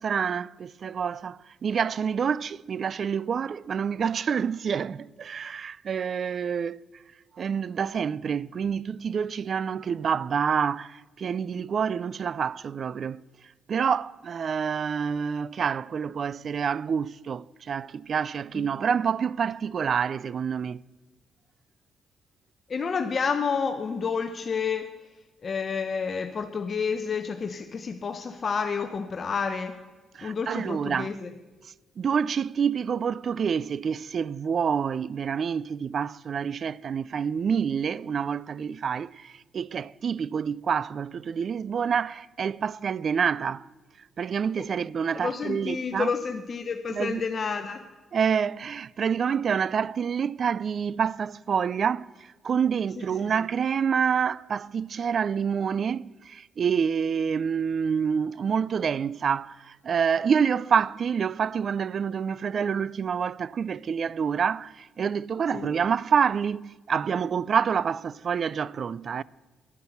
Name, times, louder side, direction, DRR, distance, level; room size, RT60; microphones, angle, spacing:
voice 1, 0.0-6.8 7.4-13.2 13.7-20.8 30.1-31.2 32.0-43.7 44.2-46.1 46.9-47.2 48.1-69.2, right 7 dB, 50° right, 0.3 m, -27 dB
voice 2, 22.7-24.9 25.4-29.8 30.2-31.3 45.1-47.8 53.0-53.3 65.5-65.7, left 5 dB, 45° left, 0.8 m, -30 dB
11.0 x 10.5 x 6.9 m
cardioid pair, 90°, 0 cm